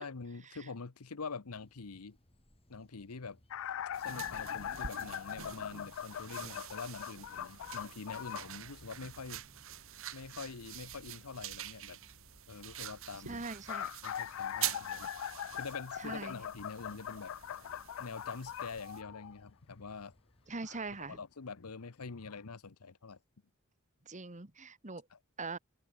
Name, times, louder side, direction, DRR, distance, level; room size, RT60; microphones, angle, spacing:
voice 1, 0.0-2.2 2.7-3.4 4.0-9.4 10.1-12.0 12.5-13.4 14.0-15.1 15.5-17.3 18.0-20.1 21.1-23.2 25.1-25.2, left 4 dB, 80° left, 0.9 m, -45 dB
sound 1, 1.5-21.2, equal, 25° left, 3.1 m, -65 dB
sound 2, 3.5-8.5 13.4-19.5 20.6-20.8 21.8-21.9 22.3-22.4, left 10 dB, 60° left, 0.4 m, -41 dB
sound 3, 3.9-19.0, right 11 dB, 65° right, 1.8 m, -46 dB
voice 2, 13.3-13.9 16.0-16.4 20.5-21.2 24.1-25.1 25.4-25.6, right 3 dB, 35° right, 1.8 m, -41 dB
head